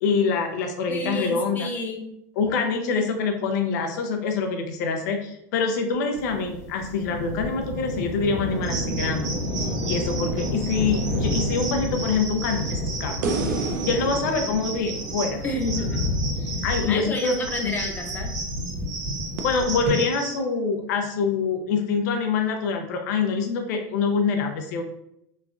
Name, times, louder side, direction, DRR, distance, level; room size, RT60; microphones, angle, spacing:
voice 1, 0.0-1.7 2.4-9.4 9.8-15.4 16.4-17.7 19.4-24.8, left 5 dB, 85° left, 4 dB, 0.5 m, -25 dB
voice 2, 0.9-2.1 15.4-16.1 16.9-18.3, left 2 dB, 20° left, 1 dB, 0.6 m, -30 dB
sound 1, 6.1-19.9, left 1 dB, 55° right, 1.4 m, -30 dB
sound 2, 8.6-20.4, right 4 dB, 35° right, 0.7 m, -35 dB
sound 3, 13.2-16.5 19.4-19.5, right 4 dB, 80° right, 0.4 m, -31 dB
3.0 x 2.2 x 2.4 m, 0.76 s
supercardioid pair, 135°, 9 cm